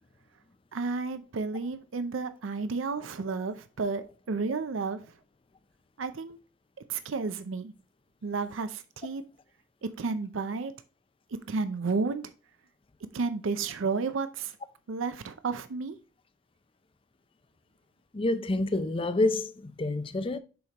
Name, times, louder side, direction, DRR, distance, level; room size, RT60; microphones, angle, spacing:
voice 1, 0.7-5.1 6.0-6.4 6.9-7.7 8.2-9.2 9.8-10.7 11.3-12.3 13.1-14.6 14.9-16.0, right 4 dB, 80° right, 0.5 m, -32 dB
voice 2, 18.1-20.4, left 2 dB, 25° left, 0.4 m, -28 dB
7.0 x 5.0 x 2.9 m
head